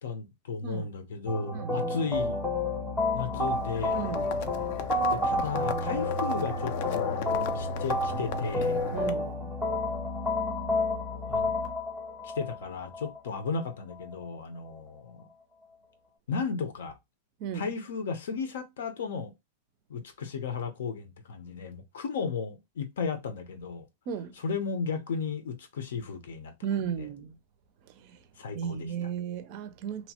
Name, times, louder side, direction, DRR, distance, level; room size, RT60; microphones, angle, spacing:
voice 1, 0.0-2.4 3.1-4.1 5.1-7.3 7.5-8.9 11.3-11.5 12.2-15.3 16.3-17.0 17.5-19.3 19.9-23.9 24.4-26.5 26.8-27.1 28.4-29.1, left 5 dB, 90° left, 0.7 m, -34 dB
sound 1, 1.3-14.2, left 1 dB, 5° left, 0.7 m, -30 dB
voice 2, 1.5-1.9 3.9-4.3 8.9-9.5 17.4-17.7 24.1-24.4 26.6-27.4 28.0-28.2 28.5-30.1, right 8 dB, 40° right, 0.4 m, -35 dB
Livestock farm animals working animals, 3.3-9.1, left 10 dB, 50° left, 0.3 m, -37 dB
2.8 x 2.1 x 2.8 m
supercardioid pair, 165°, 0 cm